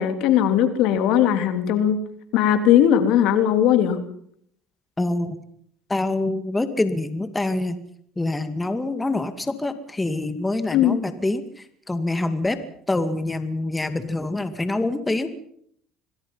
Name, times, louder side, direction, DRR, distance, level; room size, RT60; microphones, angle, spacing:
voice 1, 0.0-2.0 2.3-4.0 10.7-11.0, left 10 dB, 70° left, 9 dB, 3.3 m, -18 dB
voice 2, 5.0-5.4 5.9-7.8 8.2-12.6 12.9-15.3, left 2 dB, 15° left, 10 dB, 2.2 m, -25 dB
27.0 x 20.5 x 5.7 m, 0.66 s
supercardioid pair, 100°, 0 cm